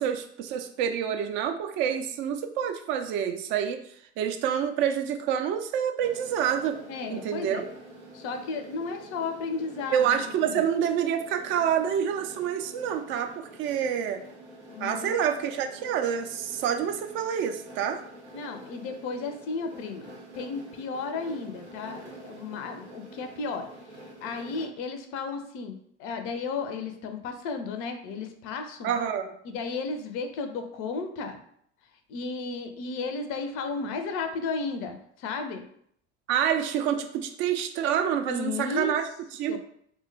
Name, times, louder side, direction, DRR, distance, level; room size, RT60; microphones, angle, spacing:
voice 1, 0.0-3.8 4.2-6.8 7.1-7.7 9.9-14.2 14.8-18.0 28.8-29.3 36.3-39.0 39.3-39.6, right 8 dB, 35° right, 7 dB, 0.4 m, -27 dB
sound 1, 6.0-24.7, right 1 dB, 90° right, 0.7 m, -47 dB
voice 2, 6.9-7.7 8.1-10.6 14.7-15.1 18.3-23.7 24.2-25.7 26.0-28.9 29.4-31.4 32.1-35.6 38.3-39.0 39.5-39.6, left 4 dB, 40° left, 7 dB, 0.5 m, -34 dB
3.0 x 2.2 x 3.2 m, 0.67 s
figure-of-eight pair, 65°, 33 cm